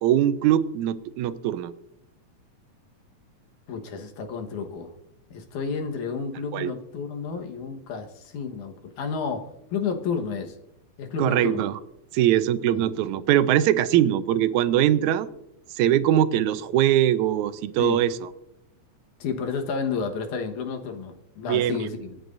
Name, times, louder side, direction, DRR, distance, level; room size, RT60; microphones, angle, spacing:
voice 1, 0.0-1.7 6.5-6.7 11.2-11.8 12.1-15.3 15.8-18.2 21.5-21.9, right 11 dB, 80° right, 14 dB, 2.0 m, -22 dB
voice 2, 3.7-4.9 5.3-10.6 11.0-11.7 12.7-12.9 17.8-18.0 19.2-22.2, left 5 dB, 80° left, 4 dB, 2.7 m, -31 dB
26.5 x 9.1 x 2.6 m, 0.85 s
omnidirectional pair, 3.4 m